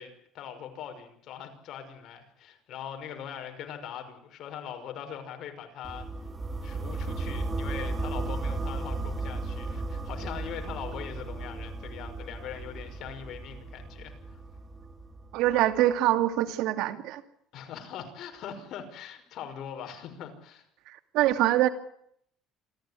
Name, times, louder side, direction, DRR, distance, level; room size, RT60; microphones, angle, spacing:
voice 1, 0.0-6.1 6.6-14.4 17.5-20.6, left 8 dB, 60° left, 6 dB, 5.8 m, -41 dB
sound 1, 5.8-15.8, right 3 dB, 20° right, 2.5 m, -35 dB
voice 2, 15.3-17.2 20.9-21.7, right 14 dB, 75° right, 8 dB, 2.5 m, -24 dB
27.5 x 15.0 x 9.9 m, 0.69 s
cardioid pair, 130°, 0 cm